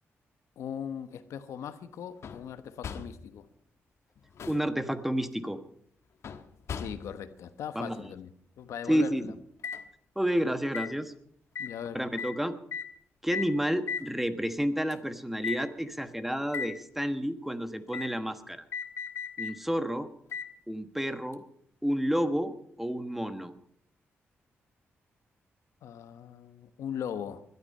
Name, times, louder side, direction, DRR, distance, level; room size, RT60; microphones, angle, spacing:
voice 1, 0.6-3.5 6.8-8.3 8.6-9.3 11.6-12.0 25.8-27.4, left 8 dB, 90° left, 10 dB, 1.2 m, -39 dB
sound 1, 2.2-2.5 2.8-3.2 4.2-4.7 6.2-7.2 9.6-9.8 10.7-10.9 11.6-11.8 12.2-12.4 12.7-12.9 13.3-13.6 13.9-14.1 14.9-15.0 15.4-15.6 16.5-16.7 17.9-18.1 18.7-19.6 20.3-20.5 21.3-21.4, left 6 dB, 70° left, 1.3 m, -36 dB
voice 2, 4.5-5.6 7.7-8.1 8.9-9.2 10.1-11.1 11.9-12.5 13.2-18.6 19.4-20.1 20.7-21.4 21.8-23.5, equal, 5° right, 9 dB, 1.4 m, -30 dB
20.5 x 12.0 x 5.5 m, 0.68 s
cardioid pair, 85°, 5 cm